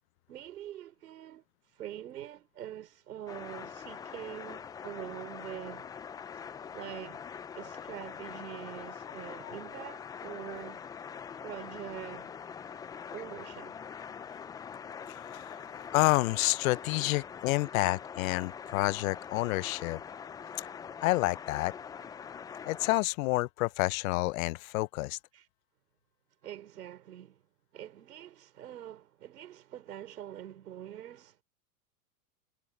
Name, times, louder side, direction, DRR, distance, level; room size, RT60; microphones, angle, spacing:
voice 1, 0.3-1.4 1.7-5.9 6.3-6.4 6.7-7.2 7.5-10.8 11.4-12.3 13.1-13.8 25.3-25.5 26.4-27.4 27.7-31.4, right 11 dB, 80° right, 5.3 m, -44 dB
sound 1, 3.3-23.0, left 7 dB, 10° left, 0.4 m, -44 dB
voice 2, 15.1-15.6 15.9-20.0 21.0-21.7 22.7-25.2, left 20 dB, 60° left, 0.8 m, -29 dB
hypercardioid pair, 120°, 46 cm